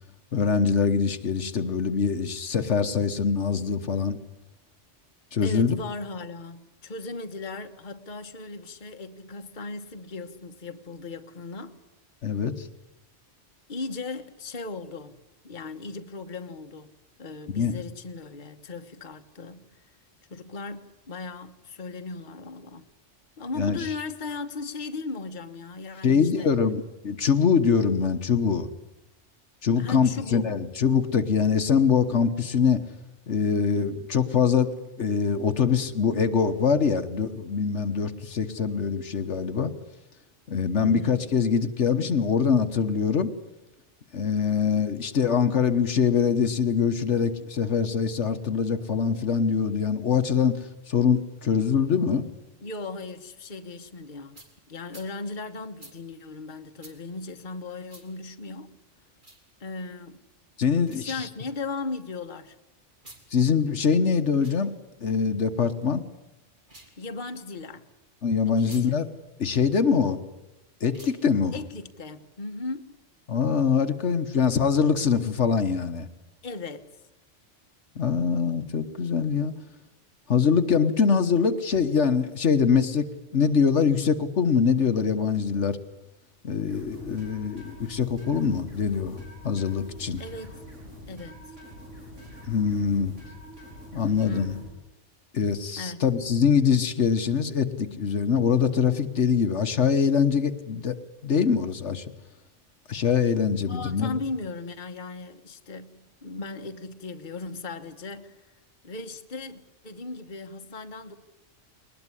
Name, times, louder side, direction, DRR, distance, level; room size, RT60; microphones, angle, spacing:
voice 1, 0.3-4.2 5.3-5.8 12.2-12.7 17.5-17.7 23.6-23.8 26.0-28.7 29.6-32.8 33.3-39.7 40.5-43.3 44.1-50.6 50.9-52.3 60.6-61.3 63.3-64.7 65.0-66.0 68.2-69.1 69.4-70.2 70.8-71.6 73.3-76.1 78.0-79.5 80.3-83.1 83.3-85.8 86.4-90.2 92.4-93.1 93.9-94.5 95.3-101.0 101.2-102.0 102.9-104.2, left 6 dB, 70° left, 1.5 m, -23 dB
voice 2, 5.4-11.8 13.7-15.2 15.4-16.9 17.2-19.8 20.3-22.9 23.4-26.5 29.8-30.5 40.7-41.3 52.6-54.4 54.7-58.8 59.6-60.2 60.9-62.6 67.0-67.9 68.5-69.0 71.5-73.0 76.4-76.9 90.2-90.6 91.1-91.5 94.0-94.8 95.8-96.0 103.7-108.5 108.8-111.1, left 3 dB, 45° left, 1.4 m, -37 dB
sound 1, 54.3-54.5 54.9-55.1 55.8-56.0 56.8-57.0 57.9-58.1 59.1-59.4 60.8-61.0 62.9-63.2 64.3-64.6 66.6-67.0 68.6-68.9 70.9-71.2, right 1 dB, 40° right, 4.0 m, -49 dB
sound 2, 86.7-94.7, left 1 dB, 90° right, 7.8 m, -45 dB
22.0 x 20.0 x 9.9 m
omnidirectional pair, 1.2 m